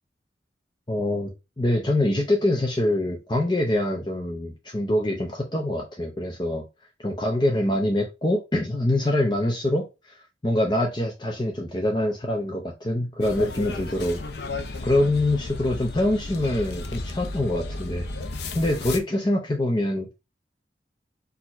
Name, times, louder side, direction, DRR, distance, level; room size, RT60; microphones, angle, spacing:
voice 1, 0.9-6.6 7.0-10.1 10.4-14.2 14.8-18.1 18.5-20.1, left 1 dB, 25° left, 1 dB, 0.7 m, -24 dB
sound 1, 13.2-19.0, left 2 dB, 70° left, 0.6 m, -34 dB
4.5 x 2.8 x 4.2 m, 0.26 s
head